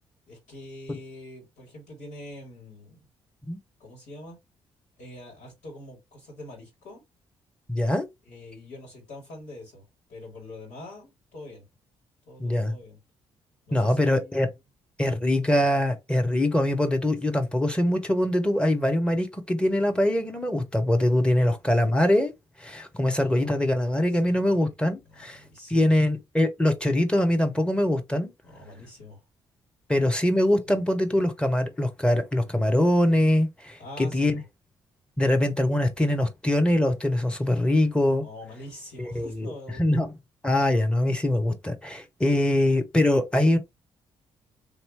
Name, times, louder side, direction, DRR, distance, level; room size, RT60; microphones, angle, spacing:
voice 1, 0.3-3.1 3.8-4.4 5.0-7.0 8.2-11.6 12.3-13.0 13.7-14.6 21.4-21.5 23.2-23.7 24.0-24.5 25.1-26.0 28.4-29.2 30.7-30.8 33.8-34.5 38.2-40.0, left 1 dB, 60° left, 2.4 m, -44 dB
voice 2, 7.7-8.1 12.4-12.7 13.7-14.5 15.0-22.3 22.6-25.4 25.7-28.3 29.9-34.4 35.2-38.2 39.0-39.5 39.8-40.1 40.4-43.6, left 1 dB, 5° left, 1.0 m, -23 dB
3.7 x 2.9 x 3.0 m
figure-of-eight pair, 40°, 14 cm